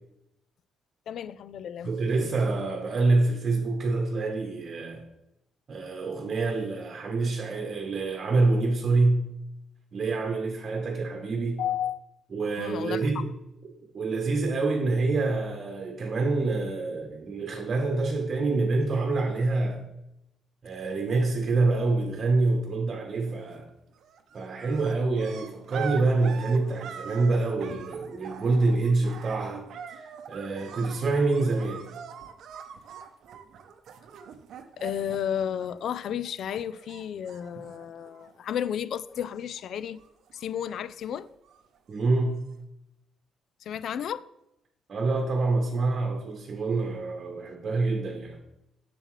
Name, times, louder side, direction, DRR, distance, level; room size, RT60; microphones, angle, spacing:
voice 1, 1.1-1.9 11.6-12.0 12.6-13.2 34.8-40.0 40.3-41.3 43.6-44.2, left 9 dB, 65° left, 0.3 m, -32 dB
voice 2, 1.8-5.0 5.7-9.2 9.9-11.6 12.3-13.3 13.9-19.8 20.6-23.7 24.3-29.7 30.3-31.9 41.9-42.4 44.9-48.4, right 3 dB, 40° right, 1.0 m, -26 dB
sound 1, 23.3-23.7 24.0-36.3 36.5-38.7 39.0-39.6 39.9-41.8 42.5-42.6, right 8 dB, 70° right, 0.6 m, -44 dB
7.3 x 6.8 x 3.2 m
cardioid pair, 115°, 0 cm